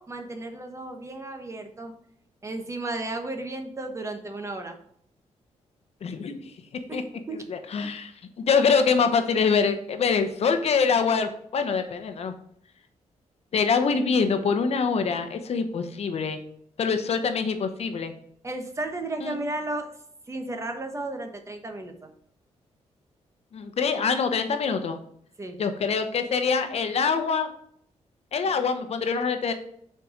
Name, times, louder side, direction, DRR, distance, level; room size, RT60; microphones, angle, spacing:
voice 1, 0.0-1.9 2.4-4.8 6.9-7.0 7.3-7.4 7.8-7.9 18.4-19.9 20.3-22.1 25.4-25.6 28.4-28.5, right 2 dB, 25° right, 5 dB, 1.1 m, -34 dB
voice 2, 6.0-6.5 6.9-7.0 7.5-8.1 8.4-12.3 13.5-16.4 16.8-18.1 19.2-19.3 23.5-25.0 25.6-27.5 28.3-29.5, left 5 dB, 60° left, 8 dB, 0.9 m, -24 dB
6.7 x 4.7 x 5.0 m, 0.68 s
wide cardioid pair, 120°, 12 cm